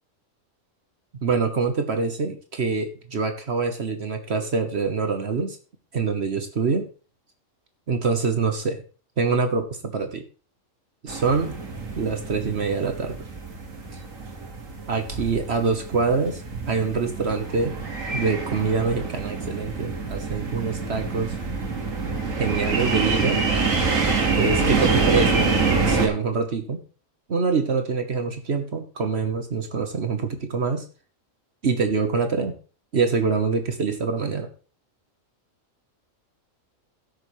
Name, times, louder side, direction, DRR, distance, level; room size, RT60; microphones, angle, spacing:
voice 1, 1.2-5.6 5.9-6.9 7.9-8.8 9.2-10.2 11.0-11.6 12.0-13.2 13.9-14.0 14.9-16.4 16.7-17.7 18.1-21.3 22.3-23.4 24.3-25.6 25.9-26.8 27.3-30.8 31.6-32.5 32.9-34.5, right 4 dB, 55° right, 6 dB, 1.4 m, -25 dB
sound 1, 11.1-26.1, right 4 dB, 80° right, 2.3 m, -26 dB
17.0 x 6.5 x 3.2 m, 0.36 s
omnidirectional pair, 1.4 m